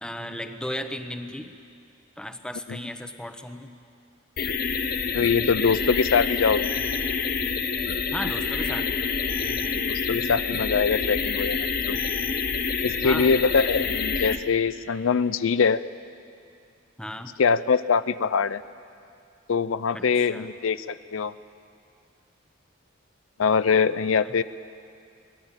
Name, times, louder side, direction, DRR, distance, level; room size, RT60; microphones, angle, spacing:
voice 1, 0.0-1.6 2.2-3.7 8.1-9.0 13.0-13.3 17.0-17.4 19.9-20.5 24.2-24.4, left 1 dB, 5° left, 7 dB, 1.0 m, -35 dB
sound 1, 4.4-14.4, left 5 dB, 45° left, 1.1 m, -27 dB
voice 2, 5.1-6.7 9.7-12.0 12.8-15.8 17.4-18.6 19.5-21.3 23.4-24.4, left 5 dB, 75° left, 15 dB, 0.5 m, -23 dB
23.5 x 18.5 x 8.9 m, 2.4 s
head